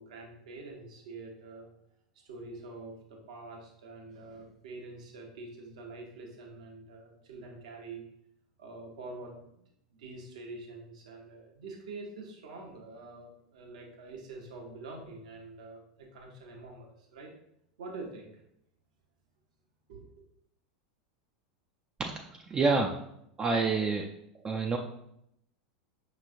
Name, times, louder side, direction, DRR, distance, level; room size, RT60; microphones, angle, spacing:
voice 1, 0.0-1.7 2.1-8.0 8.6-9.6 10.0-17.3 17.8-18.4 19.9-20.2, right 3 dB, 70° right, 1 dB, 1.0 m, -46 dB
voice 2, 22.5-23.0 23.4-24.1 24.4-24.8, right 4 dB, 20° right, 2 dB, 0.4 m, -27 dB
5.3 x 3.1 x 2.5 m, 0.75 s
hypercardioid pair, 90°, 4 cm